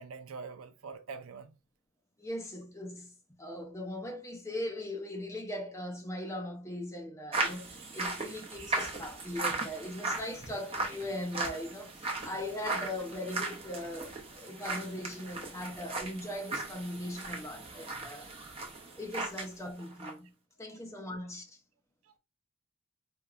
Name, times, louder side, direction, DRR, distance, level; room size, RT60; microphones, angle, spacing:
voice 1, 0.0-1.6 20.7-20.8, right 4 dB, 70° right, 0.5 m, -44 dB
voice 2, 2.2-18.3 19.0-20.3 20.6-21.6, left 1 dB, 15° left, 0.6 m, -40 dB
sound 1, 7.3-19.5 19.8-20.1, right 3 dB, 25° right, 0.8 m, -37 dB
4.4 x 2.8 x 2.4 m
head